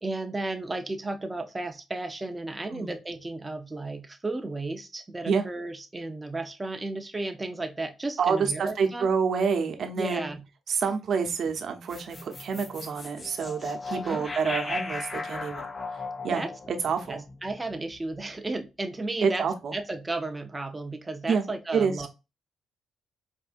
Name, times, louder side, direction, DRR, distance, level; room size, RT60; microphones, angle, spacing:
voice 1, 0.0-9.1 9.9-10.4 13.9-14.3 16.3-16.5 17.1-19.5 19.7-22.1, right 2 dB, 15° right, 0.6 m, -34 dB
voice 2, 8.2-10.3 10.7-15.7 16.2-16.4 16.8-17.2 19.2-19.7 21.3-21.4 21.7-22.1, right 6 dB, 60° right, 0.8 m, -27 dB
sound 1, 11.9-18.2, left 3 dB, 25° left, 0.5 m, -37 dB
4.4 x 2.7 x 2.5 m
cardioid pair, 90°, 0 cm